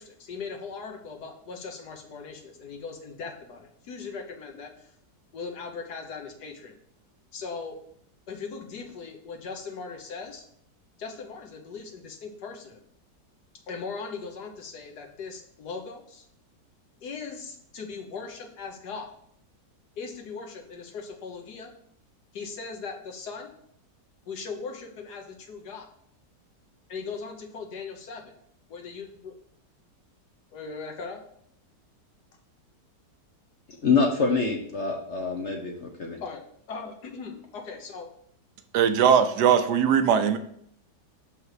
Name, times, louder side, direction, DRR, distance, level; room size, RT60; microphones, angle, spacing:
voice 1, 0.0-4.9 5.3-6.7 7.3-7.8 8.3-10.4 11.0-12.8 13.7-16.3 17.0-19.1 20.0-21.7 22.3-23.5 24.3-25.9 26.9-28.4 28.7-29.3 30.5-31.2 36.2-36.4 36.7-38.1, left 5 dB, 65° left, 2 dB, 1.6 m, -39 dB
voice 2, 33.8-36.2, left 4 dB, 50° left, 1 dB, 1.0 m, -25 dB
voice 3, 38.7-40.4, right 8 dB, 75° right, 10 dB, 1.2 m, -20 dB
6.5 x 5.5 x 4.7 m, 0.67 s
omnidirectional pair, 1.9 m